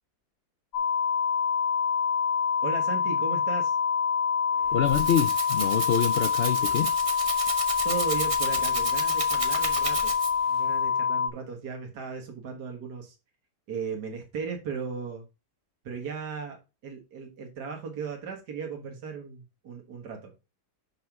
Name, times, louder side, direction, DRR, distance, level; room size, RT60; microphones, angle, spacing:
sound 1, 0.7-11.3, left 6 dB, 90° left, 2.2 m, -26 dB
voice 1, 2.6-3.8 7.8-10.1 10.5-13.2 13.7-15.2 15.8-16.6 16.8-20.3, right 5 dB, 85° right, 2.0 m, -36 dB
Rattle (instrument), 4.6-10.5, right 3 dB, 25° right, 0.8 m, -34 dB
voice 2, 4.7-6.9, left 9 dB, 70° left, 0.5 m, -26 dB
5.8 x 5.7 x 5.9 m
omnidirectional pair, 1.7 m